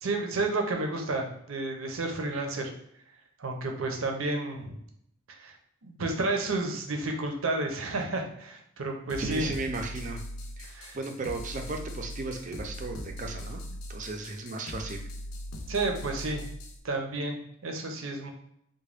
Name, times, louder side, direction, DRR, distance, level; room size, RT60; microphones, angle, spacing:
voice 1, 0.0-2.7 3.4-4.8 5.4-5.5 5.8-9.5 10.7-11.0 15.7-16.4 16.8-18.3, right 2 dB, 75° right, 3 dB, 0.7 m, -31 dB
sound 1, 9.1-16.8, left 1 dB, 85° left, 0.5 m, -40 dB
voice 2, 9.2-10.2 10.6-13.6 13.9-15.0, right 3 dB, 35° right, 4 dB, 0.4 m, -35 dB
3.6 x 2.2 x 3.3 m, 0.73 s
head